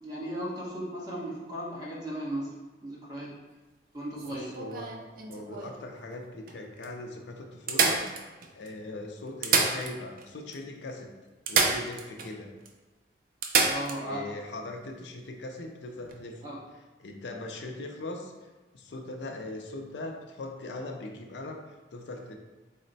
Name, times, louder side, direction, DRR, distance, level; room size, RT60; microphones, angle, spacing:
voice 1, 0.0-2.5 2.8-3.4 3.9-4.5 13.6-14.3 16.4-16.6, right 1 dB, 20° right, -6 dB, 1.0 m, -36 dB
voice 2, 4.2-4.9 5.3-8.0 8.5-11.1 11.5-12.5 14.0-16.5 17.0-18.3 18.7-22.3, left 2 dB, 75° left, 3 dB, 0.5 m, -40 dB
sound 1, 4.2-5.8 6.5-6.6 6.8-6.9 7.7-8.7 9.3-10.3 10.5-10.6 11.5-12.3 12.6-12.7 13.4-14.0 16.0-16.1, right 4 dB, 50° right, 0.4 m, -28 dB
4.1 x 2.1 x 3.9 m, 1.2 s
head